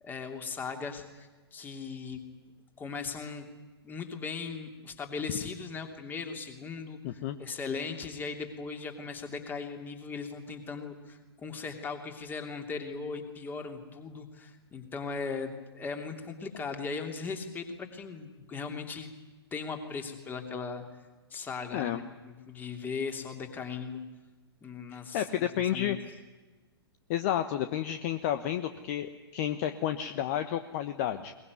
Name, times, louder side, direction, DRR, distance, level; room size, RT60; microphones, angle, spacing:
voice 1, 0.0-2.2 2.8-3.5 3.8-19.1 19.5-20.8 21.3-24.0 24.6-26.0, left 5 dB, 15° left, 6 dB, 2.9 m, -38 dB
voice 2, 7.0-7.4 21.7-22.0 25.1-26.0 27.1-31.3, left 11 dB, 35° left, 9 dB, 1.1 m, -31 dB
22.0 x 21.0 x 9.5 m, 1.3 s
figure-of-eight pair, 120°, 14 cm